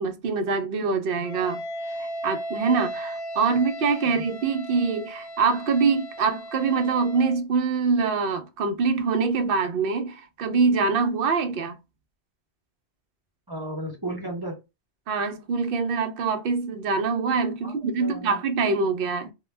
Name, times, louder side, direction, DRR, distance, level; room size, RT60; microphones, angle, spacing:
voice 1, 0.0-1.6 2.0-11.8 15.1-19.3, right 4 dB, 60° right, 0.7 m, -24 dB
Wind instrument woodwind instrument, 1.2-7.4, right 1 dB, 65° left, 0.8 m, -36 dB
voice 2, 13.5-14.6 17.6-18.4, right 1 dB, 25° right, 0.6 m, -34 dB
2.2 x 2.1 x 3.1 m
omnidirectional pair, 1.2 m